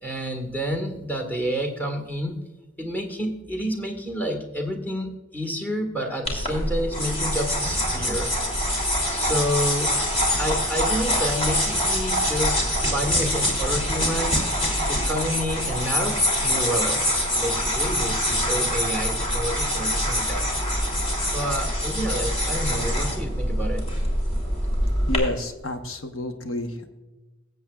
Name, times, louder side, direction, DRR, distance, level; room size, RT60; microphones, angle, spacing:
voice 1, 0.0-2.4 2.8-8.3 8.7-10.0 10.4-12.6 12.9-20.5 21.2-23.8, equal, 10° left, 3 dB, 1.6 m, -29 dB
sound 1, 6.3-25.2, equal, 30° left, 2.9 m, -24 dB
voice 2, 25.1-26.9, left 1 dB, 85° left, 6 dB, 1.1 m, -29 dB
21.0 x 8.0 x 2.4 m, 1.1 s
head